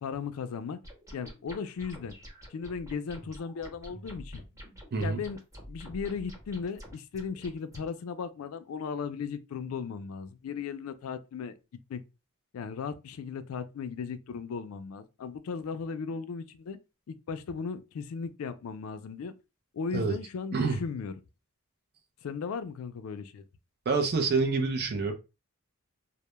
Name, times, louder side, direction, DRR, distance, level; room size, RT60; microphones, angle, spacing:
voice 1, 0.0-0.8 1.1-2.1 2.5-4.4 5.0-5.4 5.7-11.5 11.9-12.0 12.5-16.8 17.1-19.3 19.7-21.1 22.2-23.4 24.7-24.9, left 5 dB, 70° left, 0.3 m, -36 dB
sound 1, 0.8-7.9, equal, 15° right, 0.9 m, -48 dB
voice 2, 20.5-20.8 23.9-25.1, right 4 dB, 50° right, 0.5 m, -27 dB
2.1 x 2.0 x 2.9 m
head